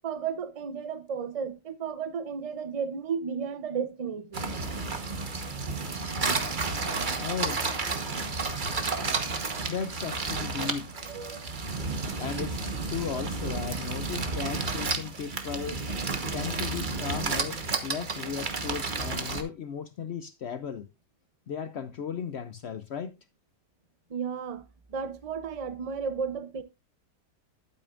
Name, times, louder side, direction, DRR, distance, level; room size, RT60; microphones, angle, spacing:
voice 1, 0.0-4.4 11.1-11.5 24.1-26.6, right 6 dB, 70° right, 0.3 m, -33 dB
sound 1, 4.3-19.4, right 3 dB, 30° right, 1.1 m, -31 dB
voice 2, 7.2-7.7 9.7-11.2 12.2-15.9 16.3-20.9 21.5-23.2, left 7 dB, 75° left, 0.6 m, -36 dB
12.0 x 8.4 x 2.5 m
omnidirectional pair, 1.8 m